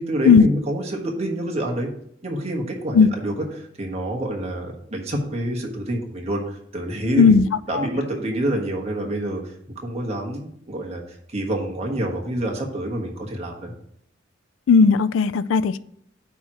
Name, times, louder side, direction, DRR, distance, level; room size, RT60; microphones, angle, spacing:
voice 1, 0.0-1.9 2.2-6.4 6.7-7.3 7.7-13.7, right 1 dB, 35° right, 1 dB, 1.3 m, -27 dB
voice 2, 7.2-7.5 7.7-7.9 14.7-15.8, left 5 dB, 75° left, 17 dB, 0.4 m, -15 dB
9.2 x 3.1 x 6.3 m, 0.69 s
head